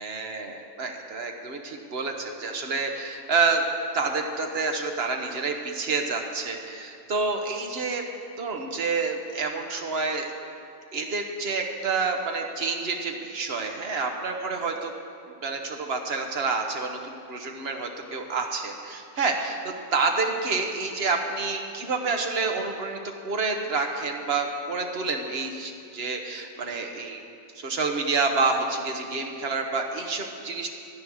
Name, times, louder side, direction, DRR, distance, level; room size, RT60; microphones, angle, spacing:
voice 1, 0.0-3.6 3.9-8.0 8.4-10.3 10.9-14.9 15.4-19.6 19.9-23.0 23.2-27.2 27.5-30.7, right 4 dB, 40° right, 3 dB, 1.1 m, -28 dB
13.5 x 9.0 x 6.3 m, 2.5 s
omnidirectional pair, 1.8 m